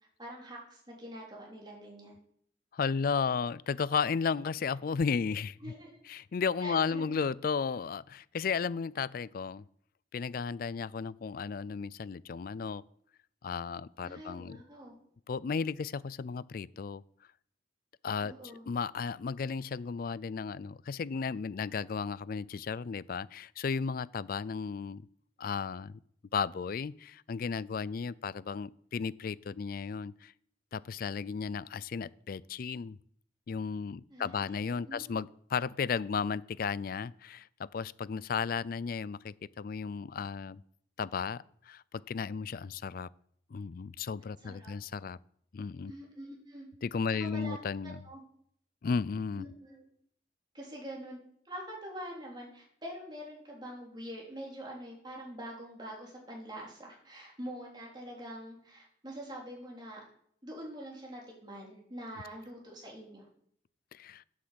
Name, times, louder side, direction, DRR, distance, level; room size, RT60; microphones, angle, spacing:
voice 1, 0.2-2.2 5.6-6.0 6.6-7.1 14.0-14.9 18.2-18.6 34.1-35.0 44.4-44.7 45.9-46.7 47.1-47.6 47.8-48.2 49.4-49.8 50.5-51.2 51.5-60.0 60.4-63.3, equal, 25° right, -2 dB, 3.7 m, -45 dB
voice 2, 2.7-5.6 6.1-9.7 10.1-12.8 13.4-14.6 15.3-17.0 18.0-18.3 18.7-25.1 25.4-26.0 26.3-30.3 30.7-33.0 33.5-40.6 41.0-43.1 43.5-45.2 45.5-45.9 46.8-48.0 48.8-49.5 63.9-64.2, left 5 dB, 50° left, 20 dB, 0.4 m, -34 dB
8.6 x 8.2 x 7.7 m, 0.66 s
head